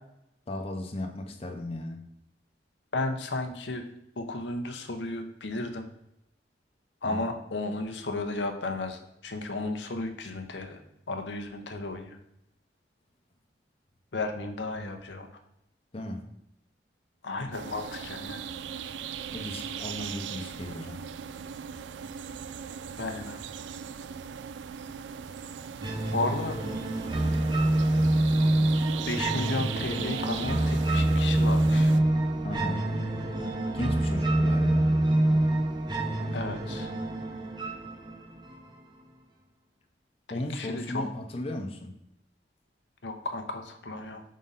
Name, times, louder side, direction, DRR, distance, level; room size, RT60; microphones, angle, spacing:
voice 1, 0.5-2.1 7.0-7.2 15.9-16.2 19.3-21.0 32.4-32.8 33.7-34.9 40.3-41.9, left 1 dB, 30° left, 3 dB, 0.6 m, -35 dB
voice 2, 2.9-3.8 4.2-5.8 7.0-10.8 11.1-12.2 14.1-15.3 17.2-18.5 23.0-23.4 26.1-26.6 29.1-31.9 36.3-36.9 40.3-41.0 43.0-44.2, left 2 dB, 85° left, 5 dB, 0.8 m, -33 dB
sound 1, 17.5-32.0, right 7 dB, 90° right, 0.3 m, -39 dB
sound 2, 25.8-38.8, right 1 dB, 25° right, 0.7 m, -26 dB
5.3 x 3.8 x 5.4 m, 0.81 s
head